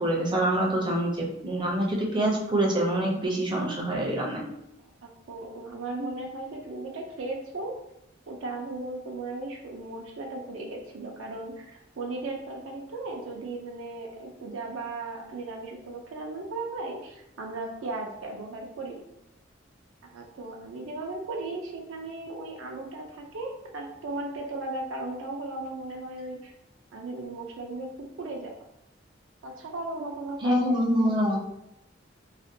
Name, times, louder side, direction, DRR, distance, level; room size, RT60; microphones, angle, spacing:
voice 1, 0.0-4.4 30.4-31.4, right 1 dB, 25° right, -1 dB, 0.4 m, -25 dB
voice 2, 5.0-7.7 8.3-19.0 20.0-26.5 26.9-27.9 28.2-28.5 29.4-30.6 31.0-31.4, right 2 dB, 80° right, 1 dB, 0.4 m, -36 dB
2.4 x 2.1 x 2.6 m, 0.83 s
head